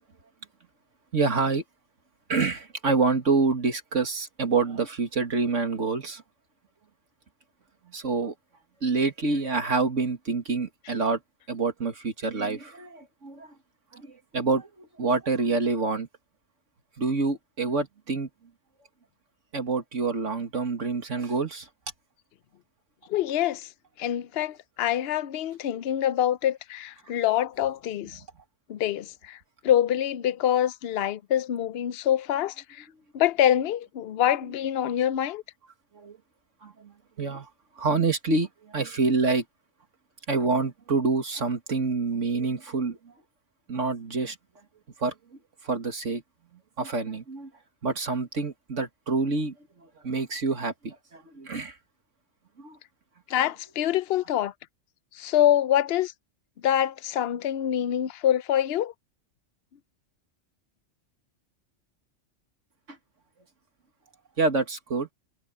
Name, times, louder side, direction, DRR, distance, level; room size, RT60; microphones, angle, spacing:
voice 1, 1.1-1.6 2.3-6.2 7.9-8.3 8.8-11.2 11.5-13.5 13.9-16.1 17.0-18.3 19.5-21.7 35.9-36.2 36.6-37.5 37.8-39.4 40.3-43.1 43.7-44.4 45.0-45.1 45.6-46.2 46.8-47.5 47.8-51.8 52.6-52.8 62.9-63.0 64.4-65.1, right 4 dB, 75° right, 2.4 m, -27 dB
voice 2, 23.1-23.7 24.0-28.2 28.7-29.4 29.6-32.8 33.1-35.4 53.3-54.5 55.1-56.1 56.6-58.9, left 11 dB, 60° left, 0.8 m, -25 dB
omnidirectional pair, 1.3 m